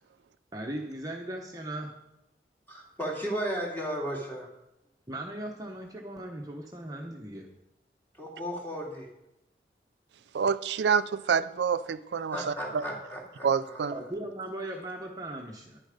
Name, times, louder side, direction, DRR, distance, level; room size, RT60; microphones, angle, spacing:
voice 1, 0.5-1.9 5.1-7.5 13.9-15.8, right 1 dB, 20° right, 1.1 m, -38 dB
voice 2, 2.7-4.5 8.1-9.1 12.3-14.0, equal, 10° left, 2.6 m, -35 dB
voice 3, 10.3-12.4 12.7-12.8 13.4-13.9, right 6 dB, 80° right, 0.4 m, -27 dB
10.5 x 10.5 x 5.1 m
head